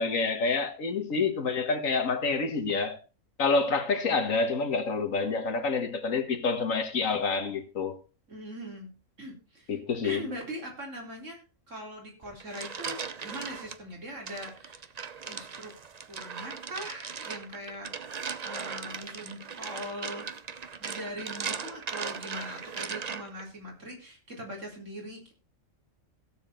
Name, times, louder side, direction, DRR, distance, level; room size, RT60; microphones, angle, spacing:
voice 1, 0.0-3.0 3.4-8.0 9.7-10.2, left 4 dB, 85° left, 1.9 m, -28 dB
voice 2, 4.1-4.5 8.3-8.9 9.2-9.8 10.0-14.9 15.2-15.7 16.1-17.9 18.4-20.3 20.8-25.3, equal, 70° right, 4.2 m, -41 dB
sound 1, 12.2-13.8 14.3-23.5, right 6 dB, 40° right, 0.7 m, -38 dB
16.5 x 7.3 x 4.3 m
omnidirectional pair, 1.3 m